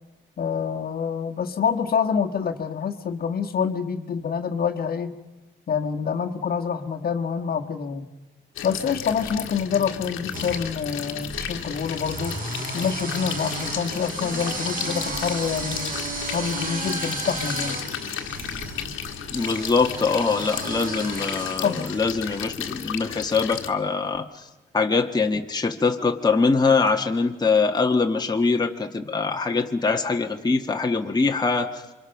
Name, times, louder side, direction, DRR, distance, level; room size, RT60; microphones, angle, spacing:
voice 1, 0.4-5.1 5.7-8.1 8.6-12.4 12.7-16.0 16.3-17.9 21.6-21.8, left 6 dB, 50° left, 4 dB, 1.6 m, -26 dB
sound 1, 8.6-23.7, left 9 dB, 90° left, 1.6 m, -34 dB
sound 2, 8.9-9.6 10.3-22.6, right 2 dB, 45° right, 3.8 m, -34 dB
voice 2, 19.3-24.5 24.7-31.8, left 4 dB, 20° left, 3 dB, 1.4 m, -23 dB
28.0 x 24.5 x 5.8 m, 1.1 s
cardioid pair, 90°, 20 cm